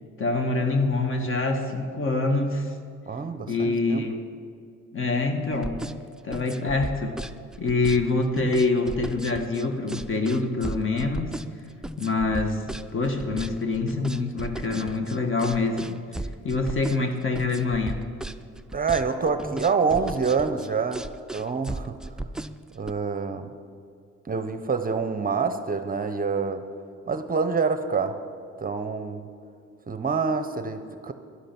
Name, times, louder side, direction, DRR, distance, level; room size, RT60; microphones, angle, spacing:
voice 1, 0.2-2.7 3.5-4.2 4.9-5.7 6.2-7.2 7.6-11.3 12.0-16.0 16.4-18.0, left 3 dB, 45° left, 5 dB, 1.5 m, -25 dB
voice 2, 3.1-4.1 18.7-21.0 21.3-22.0 22.7-23.5 24.3-26.7 27.1-28.2 28.6-29.3 29.9-31.1, right 5 dB, 30° right, 8 dB, 0.8 m, -26 dB
sound 1, 5.5-22.9, right 1 dB, ahead, 0.3 m, -36 dB
11.5 x 11.5 x 6.0 m, 2.4 s
cardioid pair, 90°, 30 cm